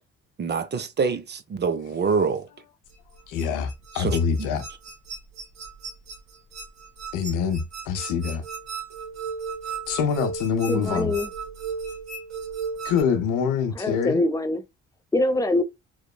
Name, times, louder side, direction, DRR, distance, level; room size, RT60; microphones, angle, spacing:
voice 1, 0.4-2.5 3.9-4.2, right 5 dB, 35° right, 0.5 m, -25 dB
sound 1, 2.9-13.0, right 5 dB, 60° right, 0.9 m, -36 dB
voice 2, 3.3-4.7 7.1-8.4 9.9-11.1 12.8-14.2, left 6 dB, 85° left, 0.6 m, -25 dB
voice 3, 10.7-11.3 13.7-14.6 15.1-15.6, left 2 dB, 10° left, 0.5 m, -23 dB
2.9 x 2.1 x 2.2 m
supercardioid pair, 65°, 30 cm